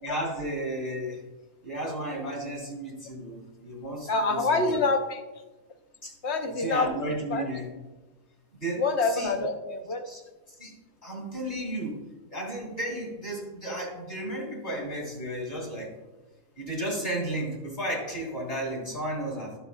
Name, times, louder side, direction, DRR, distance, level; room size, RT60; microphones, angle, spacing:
voice 1, 0.0-1.2 1.6-4.8 6.0-6.1 6.5-7.7 8.5-9.3 10.0-10.2 10.6-10.8 11.0-12.0 12.3-15.9 16.6-19.6, right 1 dB, 30° left, -1 dB, 2.5 m, -33 dB
voice 2, 4.1-5.2 6.2-6.9 7.3-7.5 8.7-10.1, left 3 dB, 55° left, 6 dB, 1.0 m, -26 dB
13.0 x 6.9 x 2.3 m, 1.1 s
omnidirectional pair, 1.5 m